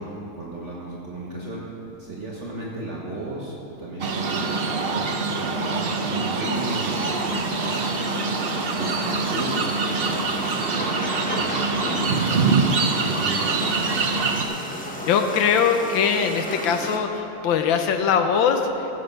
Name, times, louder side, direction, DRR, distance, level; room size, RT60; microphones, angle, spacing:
voice 1, 0.0-1.7 2.0-8.2 8.8-10.3 10.8-13.9, right 2 dB, 40° right, -5 dB, 1.5 m, -35 dB
sound 1, 4.0-14.4, right 4 dB, 80° right, 0.5 m, -24 dB
sound 2, 6.5-17.0, equal, 10° left, 0.3 m, -34 dB
voice 2, 15.1-18.7, left 7 dB, 80° left, 6 dB, 1.6 m, -21 dB
15.5 x 7.9 x 5.4 m, 2.9 s
omnidirectional pair, 2.1 m